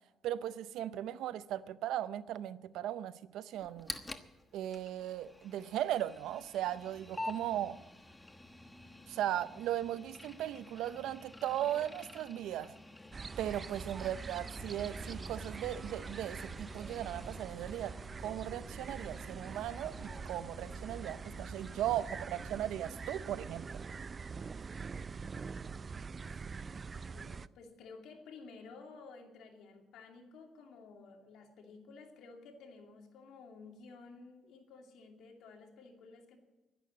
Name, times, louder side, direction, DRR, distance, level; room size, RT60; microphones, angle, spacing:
voice 1, 0.2-3.9 4.5-7.8 9.1-12.7 13.4-18.0 18.2-23.7, right 12 dB, 85° right, 0.6 m, -37 dB
sound 1, 3.6-17.4, left 2 dB, 15° left, 1.2 m, -49 dB
sound 2, 13.1-27.5, right 5 dB, 35° right, 0.4 m, -44 dB
sound 3, 14.5-23.0, left 3 dB, 30° left, 1.7 m, -54 dB
voice 2, 27.0-36.4, left 4 dB, 85° left, 2.6 m, -53 dB
11.0 x 11.0 x 8.4 m
cardioid pair, 90°, 0 cm